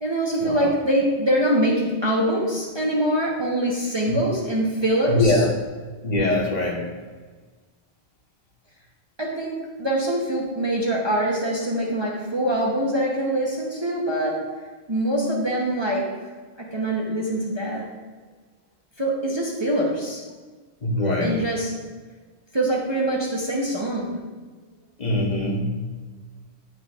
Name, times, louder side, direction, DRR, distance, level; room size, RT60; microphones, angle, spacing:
voice 1, 0.0-5.4 9.2-14.5 14.9-16.1 16.7-17.8 19.0-20.2 21.2-21.7 22.5-24.2, right 1 dB, 30° right, -4 dB, 0.7 m, -24 dB
voice 2, 5.1-5.5 6.0-6.9 20.8-21.4 25.0-25.9, left 2 dB, 40° left, -2 dB, 1.0 m, -23 dB
9.5 x 4.5 x 2.4 m, 1.4 s
omnidirectional pair, 1.1 m